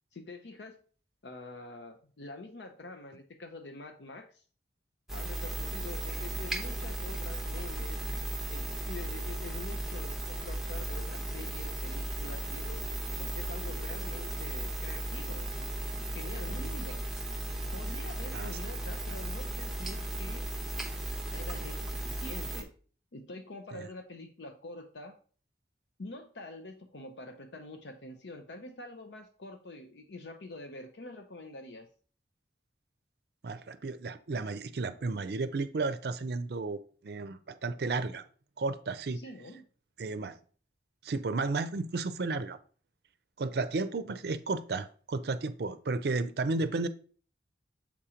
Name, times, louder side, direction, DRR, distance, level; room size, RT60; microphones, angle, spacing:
voice 1, 0.1-0.8 1.2-4.4 5.1-8.0 8.5-12.8 13.2-15.7 16.1-17.0 17.7-20.5 21.3-22.7 23.1-25.2 26.0-31.9 39.1-39.6, left 2 dB, 75° left, 0.7 m, -46 dB
sound 1, 5.1-22.6, right 1 dB, ahead, 0.8 m, -36 dB
voice 2, 33.4-38.2 38.6-39.2 40.0-40.4 41.0-42.6 43.4-46.9, right 3 dB, 60° right, 0.5 m, -33 dB
7.3 x 2.9 x 4.9 m
head